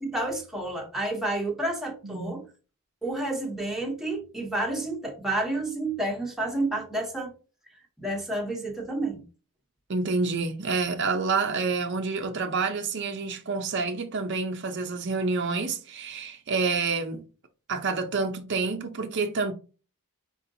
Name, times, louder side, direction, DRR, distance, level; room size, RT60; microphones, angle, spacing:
voice 1, 0.0-2.4 3.0-7.3 8.0-9.2, right 2 dB, ahead, 1.0 m, -30 dB
voice 2, 2.0-2.4 9.9-17.2 17.7-19.5, right 4 dB, 50° right, 0.6 m, -28 dB
4.5 x 4.2 x 2.7 m
head